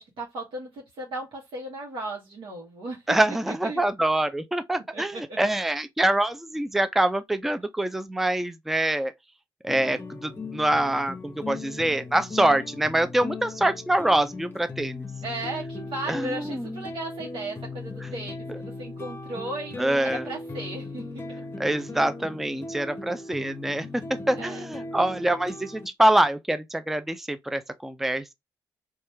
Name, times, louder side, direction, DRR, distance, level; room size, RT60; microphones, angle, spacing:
voice 1, 0.0-3.8 4.9-5.4 15.2-21.3 24.3-24.6, right 2 dB, 65° right, 1.0 m, -36 dB
voice 2, 3.1-9.1 9.6-15.1 16.1-16.8 18.5-18.6 19.8-20.2 21.6-28.3, right 1 dB, 5° right, 0.4 m, -25 dB
sound 1, 9.7-25.9, left 3 dB, 25° left, 0.7 m, -38 dB
2.9 x 2.3 x 3.2 m
supercardioid pair, 60°, 9 cm